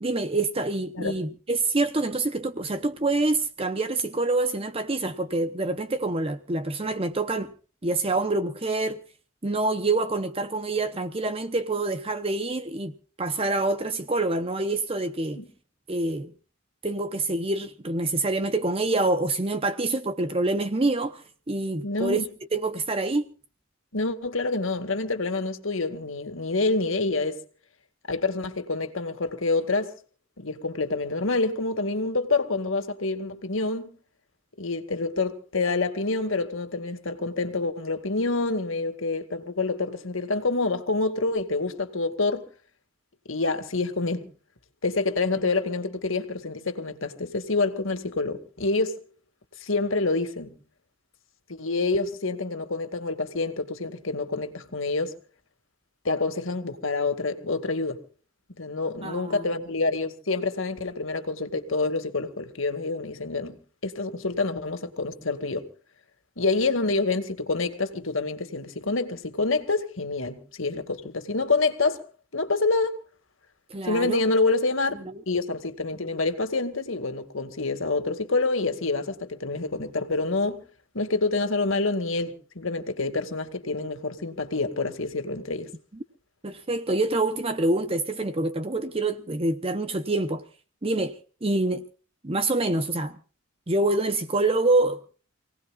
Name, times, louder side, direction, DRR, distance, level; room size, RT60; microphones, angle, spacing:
voice 1, 0.0-7.5 7.8-9.0 9.4-15.4 15.9-16.3 16.8-22.2 22.5-23.3 59.0-59.4 73.7-74.2 75.0-75.2 86.4-90.4 90.8-91.9 92.2-93.2 93.7-95.0, right 2 dB, 30° right, 0.8 m, -26 dB
voice 2, 21.8-22.3 23.9-27.4 28.1-29.9 30.4-34.0 34.6-42.5 43.3-44.3 44.8-49.0 49.6-50.6 51.5-55.1 56.0-58.0 58.5-63.6 63.8-65.7 66.4-72.1 72.3-73.0 73.8-75.0 75.3-80.6 80.9-85.7, left 3 dB, 75° left, 2.2 m, -27 dB
28.5 x 18.0 x 2.5 m
head